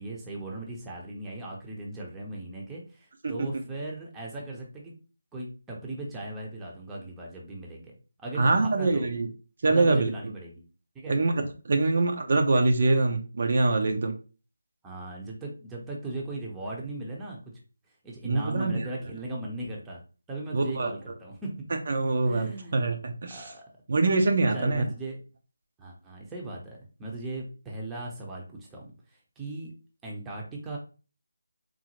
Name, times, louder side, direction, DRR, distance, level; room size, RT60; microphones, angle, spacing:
voice 1, 0.0-4.9 5.3-9.1 9.7-10.6 10.9-11.1 14.8-17.4 18.0-20.0 20.3-21.5 22.2-22.9 23.3-23.6 24.5-25.2 25.8-28.9 29.4-29.7 30.0-30.8, right 2 dB, 10° right, -3 dB, 0.6 m, -38 dB
voice 2, 8.4-9.3 9.6-10.1 11.1-14.2 18.2-18.9 20.5-20.9 21.9-23.5 23.9-24.8, right 3 dB, 50° right, 4 dB, 0.5 m, -24 dB
3.9 x 2.0 x 3.0 m, 0.34 s
figure-of-eight pair, 160°, 0 cm